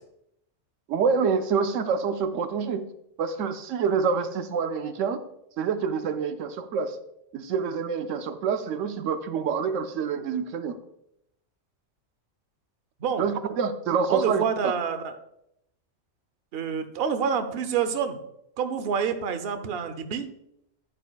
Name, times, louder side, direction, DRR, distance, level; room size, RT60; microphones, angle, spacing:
voice 1, 0.9-2.9 3.2-5.2 5.6-7.0 7.3-10.8 13.2-14.7, right 6 dB, 85° right, 9 dB, 1.0 m, -27 dB
voice 2, 14.1-15.2 16.5-18.2 18.6-20.3, right 7 dB, 55° right, 9 dB, 0.9 m, -27 dB
11.0 x 8.4 x 2.3 m, 0.78 s
omnidirectional pair, 1.3 m